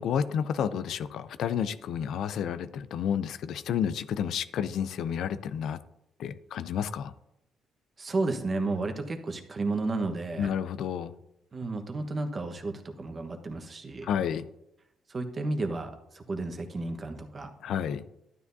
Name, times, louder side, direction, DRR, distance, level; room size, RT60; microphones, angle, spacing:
voice 1, 0.0-5.8 6.2-7.1 10.4-11.1 14.0-14.4 17.6-18.0, left 8 dB, 75° left, 14 dB, 0.4 m, -30 dB
voice 2, 8.0-10.5 11.5-14.1 15.1-17.5, right 3 dB, 35° right, 5 dB, 1.2 m, -32 dB
12.0 x 9.3 x 2.7 m, 0.85 s
cardioid pair, 90°, 0 cm